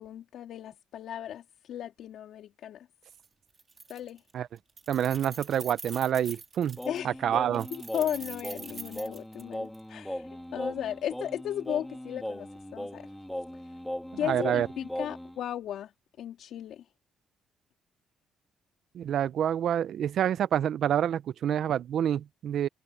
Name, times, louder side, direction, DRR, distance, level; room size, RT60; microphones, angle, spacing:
voice 1, 0.0-2.9 3.9-4.2 6.8-7.2 7.7-13.1 13.5-13.8 14.2-15.9 16.2-16.8, left 10 dB, 75° left, 3.2 m, -36 dB
Keys jangling, 3.1-3.2 3.5-4.3 4.6-7.0 7.5-9.8, right 4 dB, 35° right, 3.2 m, -44 dB
voice 2, 4.9-6.8 7.0-7.7 14.2-14.7 18.9-22.7, right 10 dB, 70° right, 0.6 m, -27 dB
Singing, 6.8-15.4, left 1 dB, 5° left, 2.2 m, -38 dB
cardioid pair, 90°, 0 cm